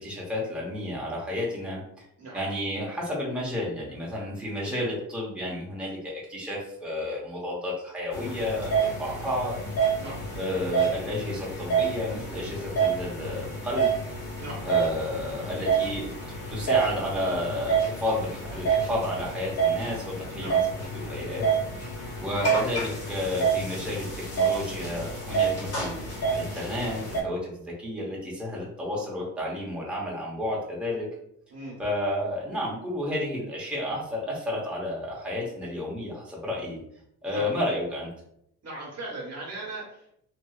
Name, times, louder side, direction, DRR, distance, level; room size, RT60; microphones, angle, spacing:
voice 1, 0.0-1.8 2.3-9.6 10.3-13.9 14.6-20.7 20.9-21.5 22.2-24.1 24.3-31.1 31.8-36.8 37.2-38.1, left 1 dB, 5° right, -4 dB, 0.9 m, -31 dB
sound 1, 8.1-27.2, right 5 dB, 55° left, 1.5 m, -28 dB
voice 2, 38.6-40.1, right 2 dB, 55° right, -3 dB, 1.2 m, -38 dB
3.0 x 2.6 x 2.4 m, 0.74 s
cardioid pair, 90°, 30 cm